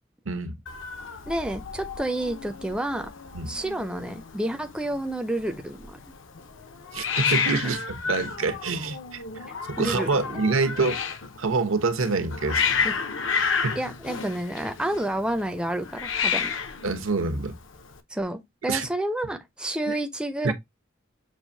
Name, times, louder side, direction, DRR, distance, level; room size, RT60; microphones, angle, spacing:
voice 1, 0.3-0.6 3.3-3.5 6.9-9.2 9.6-11.0 11.4-12.6 13.6-13.8 16.8-17.6 18.7-18.9 19.9-20.0 20.4-20.5, right 3 dB, 85° right, 0.9 m, -26 dB
Hiss, 0.7-18.0, left 6 dB, 65° left, 0.7 m, -31 dB
voice 2, 1.3-3.1 3.5-6.0 9.8-10.4 12.8-12.9 13.8-16.5 18.1-20.5, right 1 dB, 5° right, 0.4 m, -30 dB
6.3 x 2.6 x 2.6 m
head